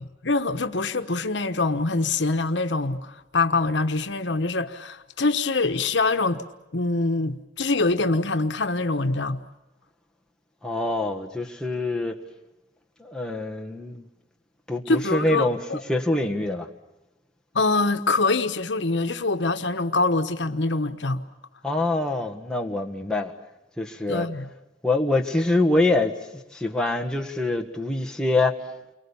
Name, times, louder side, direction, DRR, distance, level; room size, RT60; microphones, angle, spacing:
voice 1, 0.2-6.4 6.7-9.4 14.9-15.8 17.5-21.2 24.1-24.5, left 3 dB, 75° left, 1.2 m, -24 dB
voice 2, 10.6-12.2 13.0-14.1 14.7-15.6 15.9-16.7 21.6-23.3 23.8-24.3 24.8-26.2 26.5-28.5, left 2 dB, 5° left, 1.6 m, -25 dB
29.5 x 23.5 x 7.1 m
head